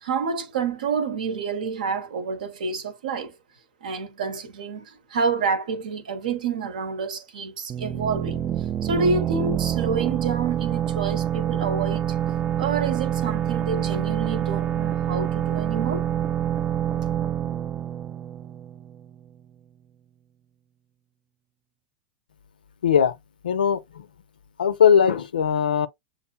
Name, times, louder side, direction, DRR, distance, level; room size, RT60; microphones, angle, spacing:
voice 1, 0.0-3.3 3.8-8.4 8.8-12.2 12.6-16.1, right 5 dB, 60° right, 0.8 m, -28 dB
sound 1, 7.7-19.2, right 10 dB, 25° right, 0.3 m, -26 dB
voice 2, 22.8-23.1 23.4-24.0 24.6-25.9, left 7 dB, 70° left, 0.5 m, -19 dB
7.2 x 2.6 x 2.2 m
figure-of-eight pair, 90°, 5 cm